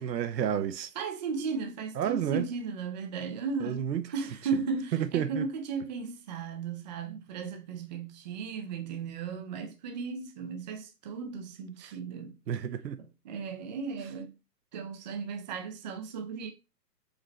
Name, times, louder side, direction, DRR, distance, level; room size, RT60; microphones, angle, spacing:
voice 1, 0.0-0.9 2.0-2.5 3.6-4.1 4.9-5.4 11.8-11.9 12.5-13.0, right 9 dB, 80° right, 0.8 m, -30 dB
voice 2, 1.0-12.4 13.0-14.3 14.7-16.5, right 5 dB, 30° right, 0.5 m, -36 dB
5.0 x 3.1 x 3.1 m
hypercardioid pair, 135°, 50 cm